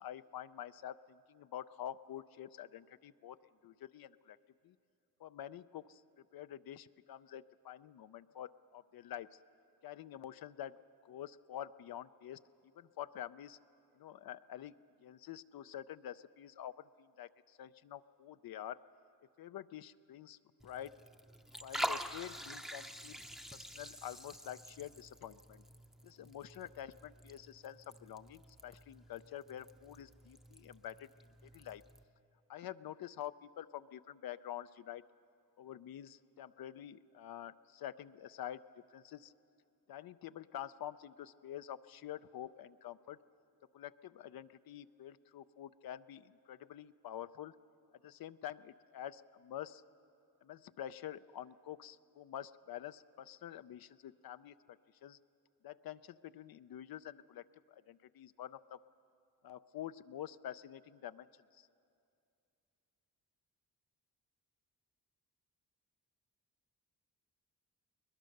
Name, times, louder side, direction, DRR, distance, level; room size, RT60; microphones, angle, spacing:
voice 1, 0.0-3.4 3.6-4.4 4.6-4.7 5.2-6.0 6.3-9.4 9.8-12.4 12.8-13.6 14.0-14.7 15.0-18.8 19.4-20.4 20.6-21.0 21.6-23.2 23.5-25.6 26.0-31.1 31.5-31.8 32.5-35.0 35.6-39.3 39.9-43.2 43.7-47.5 48.0-49.8 50.4-55.2 55.6-58.8 59.4-61.3 61.6-61.7, left 11 dB, 65° left, 13 dB, 0.5 m, -47 dB
Liquid, 20.6-32.0, equal, ahead, 0.7 m, -46 dB
21.5 x 20.0 x 6.5 m, 2.6 s
cardioid pair, 90°, 39 cm